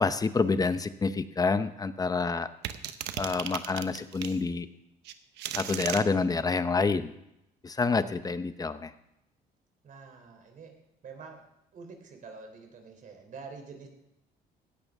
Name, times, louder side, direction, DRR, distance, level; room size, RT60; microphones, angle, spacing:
voice 1, 0.0-2.5 3.2-4.7 5.6-7.1 7.6-8.9, left 4 dB, 20° left, 12 dB, 0.8 m, -28 dB
sound 1, 2.6-4.4 5.0-6.0, right 11 dB, 85° right, 1.0 m, -35 dB
voice 2, 9.8-10.8 11.0-11.5 11.7-13.9, right 4 dB, 50° right, 4 dB, 3.4 m, -46 dB
18.0 x 14.0 x 3.6 m, 0.83 s
cardioid pair, 110°, 17 cm